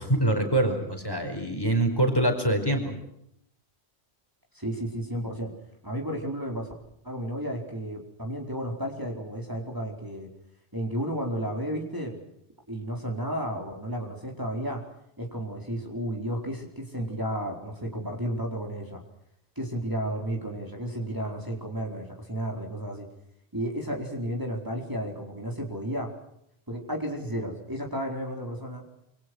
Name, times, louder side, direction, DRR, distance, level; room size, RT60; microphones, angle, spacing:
voice 1, 0.0-2.9, right 1 dB, 20° left, 4 dB, 4.9 m, -25 dB
voice 2, 4.5-5.5 5.8-6.7 7.0-10.3 10.7-12.2 12.7-14.8 15.2-19.0 19.6-23.1 23.5-26.1 26.7-28.8, equal, 20° right, 0 dB, 4.5 m, -32 dB
28.0 x 25.5 x 6.3 m, 0.75 s
omnidirectional pair, 1.1 m